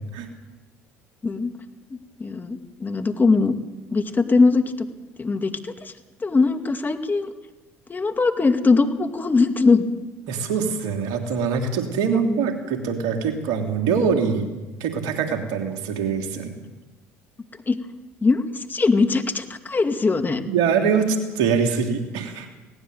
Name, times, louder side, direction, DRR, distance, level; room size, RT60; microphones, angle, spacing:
voice 1, 2.2-3.5 3.9-4.6 5.2-5.9 6.2-7.3 7.9-9.9 12.1-12.4 17.7-17.8 18.2-20.4, left 4 dB, 25° left, 7 dB, 2.4 m, -21 dB
voice 2, 10.3-14.5 14.8-16.5 20.5-22.5, right 6 dB, 65° right, 4 dB, 3.0 m, -23 dB
20.0 x 18.0 x 8.1 m, 1.1 s
hypercardioid pair, 60°, 7 cm